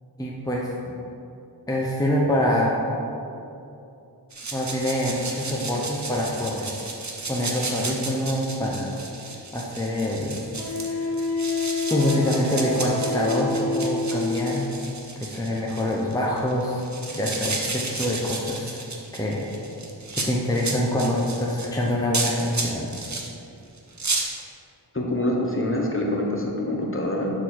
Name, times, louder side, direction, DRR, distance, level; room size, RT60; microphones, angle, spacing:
voice 1, 0.2-0.7 1.7-2.8 4.5-6.7 7.3-9.0 9.5-11.2 11.9-14.7 15.2-16.8 17.1-18.8 19.1-19.5 20.2-23.0, left 1 dB, 10° left, -3 dB, 0.7 m, -25 dB
sound 1, 4.3-23.3 23.8-24.2, right 3 dB, 40° right, 0.9 m, -33 dB
Wind instrument woodwind instrument, 10.6-14.6, left 3 dB, 60° left, 1.4 m, -28 dB
voice 2, 24.9-27.3, left 1 dB, 30° left, -1 dB, 1.1 m, -25 dB
6.9 x 3.9 x 6.3 m, 2.8 s
wide cardioid pair, 60°, 42 cm